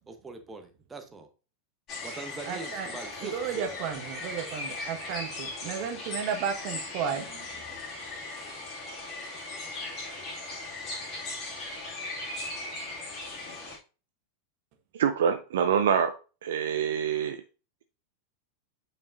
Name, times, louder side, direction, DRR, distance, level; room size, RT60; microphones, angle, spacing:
voice 1, 0.1-1.3 2.0-3.8, right 3 dB, 15° right, 6 dB, 1.0 m, -42 dB
sound 1, 1.9-13.8, left 2 dB, 35° left, 2.3 m, -38 dB
voice 2, 2.5-2.9 3.2-7.4, right 7 dB, 45° right, 5 dB, 1.3 m, -33 dB
voice 3, 14.9-16.1 16.4-17.4, right 8 dB, 60° right, 8 dB, 0.5 m, -25 dB
8.8 x 5.2 x 2.6 m, 0.34 s
figure-of-eight pair, 90°, 0 cm